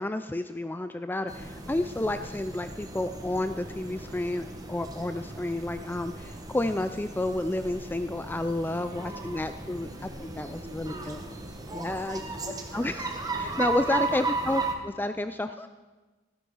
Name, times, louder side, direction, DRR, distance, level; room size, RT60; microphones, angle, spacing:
voice 1, 0.0-9.9 10.2-11.2 11.7-15.7, left 1 dB, 10° left, 10 dB, 0.4 m, -31 dB
sound 1, 1.3-14.7, right 3 dB, 20° right, 1.2 m, -36 dB
voice 2, 8.1-11.9 12.2-12.6 13.2-14.0, left 1 dB, 45° right, -3 dB, 3.4 m, -50 dB
15.0 x 9.9 x 5.7 m, 1.2 s
head